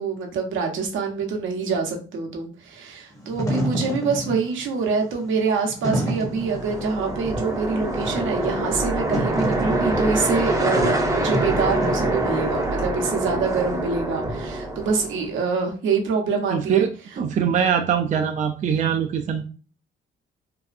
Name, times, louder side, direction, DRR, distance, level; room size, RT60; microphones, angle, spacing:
voice 1, 0.0-16.9, right 5 dB, 75° right, 2 dB, 0.7 m, -25 dB
Wind / Fire, 3.1-12.7, equal, 15° left, 0.9 m, -30 dB
sound 1, 6.3-15.3, right 1 dB, 15° right, 0.8 m, -25 dB
voice 2, 16.5-16.9 17.2-19.5, right 8 dB, 40° right, 4 dB, 0.4 m, -22 dB
2.6 x 2.3 x 2.4 m, 0.38 s
cardioid pair, 90°, 20 cm